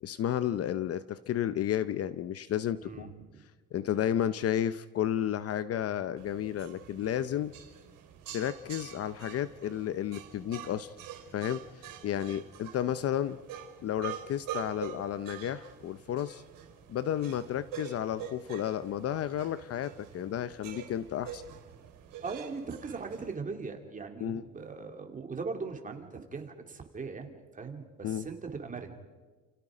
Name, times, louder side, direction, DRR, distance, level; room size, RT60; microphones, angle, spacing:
voice 1, 0.0-3.1 3.7-7.5 8.3-10.9 11.3-11.6 12.0-13.4 13.8-16.4 16.9-21.4 24.2-24.4 28.0-28.3, left 10 dB, 45° left, 14 dB, 0.7 m, -32 dB
voice 2, 2.8-3.4 22.2-29.0, right 4 dB, 25° right, 3 dB, 2.7 m, -40 dB
sound 1, 6.2-23.3, right 9 dB, 75° right, 4.1 m, -46 dB
29.5 x 29.0 x 5.0 m, 1.3 s
cardioid pair, 150°, 33 cm